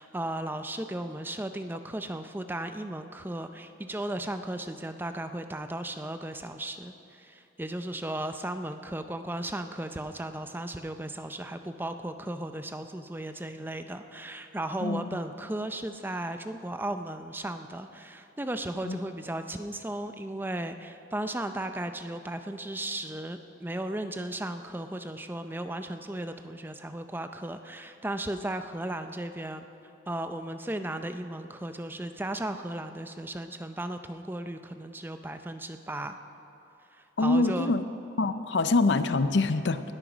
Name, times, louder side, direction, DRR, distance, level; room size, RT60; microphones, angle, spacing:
voice 1, 0.0-29.7 30.1-36.1 37.0-37.7, right 1 dB, 10° right, 8 dB, 0.5 m, -35 dB
voice 2, 14.8-15.2 18.8-19.0 37.2-37.8 38.2-39.8, left 3 dB, 65° left, 12 dB, 0.6 m, -25 dB
19.5 x 8.9 x 6.1 m, 2.9 s
head